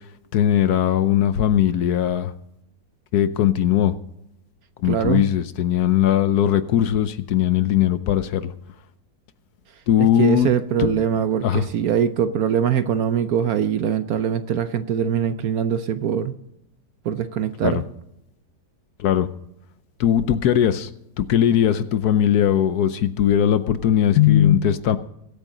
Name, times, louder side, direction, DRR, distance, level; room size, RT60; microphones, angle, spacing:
voice 1, 0.3-2.3 3.1-3.9 4.8-8.5 9.9-10.5 10.8-10.9 11.4-11.6 17.6-17.8 19.0-19.3 20.0-20.9 21.2-25.0, left 10 dB, 65° left, 12 dB, 1.1 m, -19 dB
voice 2, 4.9-5.2 10.0-16.3 17.0-17.8, right 8 dB, 65° right, 11 dB, 1.0 m, -22 dB
21.5 x 8.7 x 3.9 m, 0.80 s
omnidirectional pair, 2.0 m